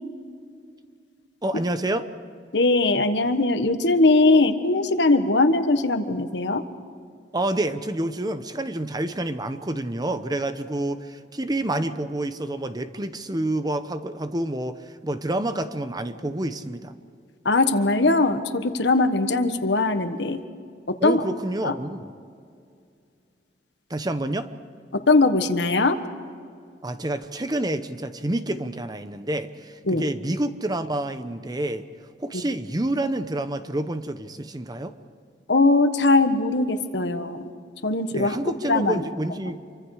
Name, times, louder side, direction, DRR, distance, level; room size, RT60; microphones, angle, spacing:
voice 1, 1.4-2.1 7.3-16.9 21.0-22.1 23.9-24.5 26.8-31.8 32.2-35.0 38.1-39.6, right 1 dB, 25° right, 10 dB, 0.9 m, -28 dB
voice 2, 2.5-6.6 17.4-20.4 20.9-21.2 21.6-21.7 24.9-26.0 29.9-30.0 32.3-32.4 35.5-37.5 37.8-39.0, left 2 dB, 85° left, 9 dB, 1.4 m, -20 dB
28.0 x 24.5 x 4.9 m, 2.3 s
head